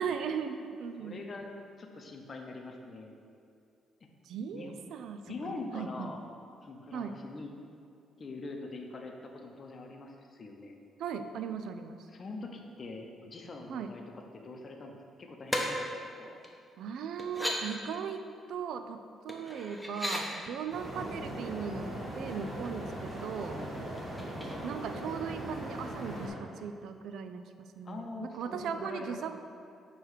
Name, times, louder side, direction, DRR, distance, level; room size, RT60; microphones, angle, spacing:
voice 1, 0.0-1.3 4.2-6.1 6.9-7.2 11.0-12.1 13.7-13.9 16.8-23.6 24.6-27.4 27.8-29.3, right 6 dB, 80° right, 9 dB, 0.3 m, -38 dB
voice 2, 1.0-1.5 1.8-3.2 4.5-4.7 5.3-6.2 6.6-7.5 8.2-10.8 12.1-15.9 16.2-16.4 20.9-21.1 23.5-23.9 27.8-29.2, left 3 dB, 40° left, 2 dB, 0.7 m, -43 dB
sound 1, 15.5-15.6 16.4-16.5 17.2-17.6 19.3-20.2 22.0-22.1 22.5-22.9 24.0-24.9 25.3-25.4, left 1 dB, 5° left, 0.8 m, -36 dB
sound 2, 20.7-26.3, right 1 dB, 35° right, 1.4 m, -39 dB
6.4 x 3.1 x 4.8 m, 2.3 s
cardioid pair, 90°, 0 cm